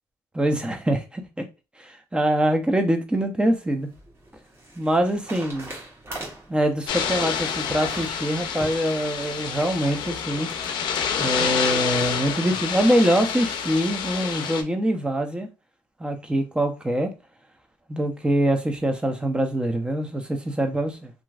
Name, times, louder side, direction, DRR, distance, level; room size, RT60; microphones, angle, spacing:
voice 1, 0.3-1.4 1.8-3.9 4.7-5.7 6.5-10.5 11.2-15.5 16.0-17.1 17.9-21.1, right 1 dB, 15° right, 0.7 m, -24 dB
sound 1, 3.5-10.8, right 1 dB, 30° right, 1.3 m, -43 dB
sound 2, 6.9-14.6, left 7 dB, 80° left, 0.5 m, -28 dB
2.9 x 2.6 x 2.4 m
cardioid pair, 75°, 8 cm